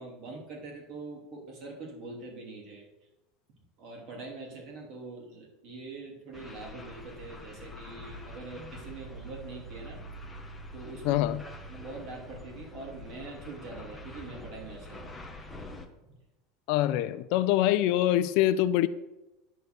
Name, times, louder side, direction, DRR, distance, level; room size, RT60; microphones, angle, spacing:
voice 1, 0.0-2.8 3.8-10.0 10.7-11.4 11.7-15.2, right 3 dB, 45° right, 3.0 m, -43 dB
sound 1, 6.3-15.9, left 1 dB, 5° left, 1.0 m, -45 dB
voice 2, 11.0-11.4 16.7-18.9, left 13 dB, 55° left, 0.4 m, -24 dB
10.5 x 4.6 x 8.1 m
supercardioid pair, 165°, 0 cm